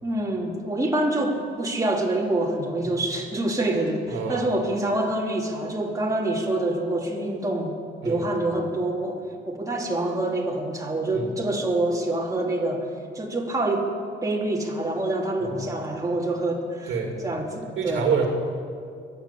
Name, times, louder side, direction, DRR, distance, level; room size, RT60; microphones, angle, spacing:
voice 1, 0.0-7.8 8.0-12.9 13.1-13.9 14.2-18.1, right 1 dB, 15° right, -2 dB, 2.9 m, -26 dB
voice 2, 4.1-4.5 8.0-8.2 11.1-11.3 15.4-15.7 16.9-17.2 17.8-18.3, right 6 dB, 75° right, 2 dB, 2.6 m, -27 dB
23.0 x 8.4 x 7.1 m, 2.3 s
cardioid pair, 90°, 20 cm